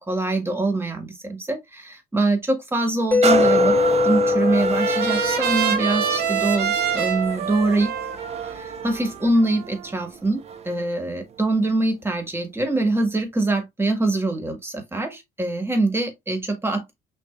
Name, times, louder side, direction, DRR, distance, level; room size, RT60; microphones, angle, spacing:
voice 1, 0.0-3.8 4.0-7.9 8.5-10.4 10.6-16.9, right 2 dB, 15° right, 1.5 m, -24 dB
Mallet percussion, 3.1-6.9, left 4 dB, 10° left, 0.3 m, -22 dB
sound 1, 3.2-10.8 11.4-11.5, right 6 dB, 40° right, 0.6 m, -29 dB
Trumpet, 3.8-10.0, right 8 dB, 70° right, 1.4 m, -27 dB
6.1 x 2.7 x 2.5 m
cardioid pair, 110°, 17 cm